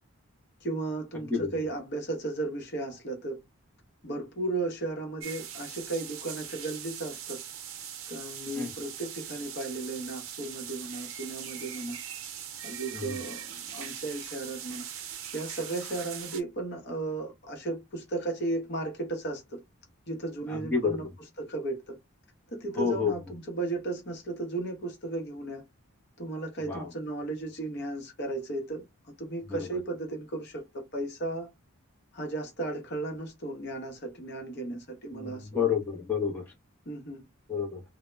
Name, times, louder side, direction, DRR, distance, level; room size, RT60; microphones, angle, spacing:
voice 1, 0.6-3.4 4.0-7.4 8.1-12.0 12.6-14.9 15.3-19.6 20.1-21.0 21.4-22.0 22.5-23.2 23.5-25.6 26.2-31.5 32.1-35.6 36.9-37.2, right 2 dB, 50° left, 0.7 m, -35 dB
sound 1, 5.2-16.4, right 9 dB, 65° right, 0.5 m, -41 dB
voice 2, 20.5-21.0 22.8-23.1 26.6-26.9 29.5-29.7 35.1-36.5 37.5-37.8, left 6 dB, 10° left, 0.6 m, -29 dB
2.0 x 2.0 x 3.2 m
head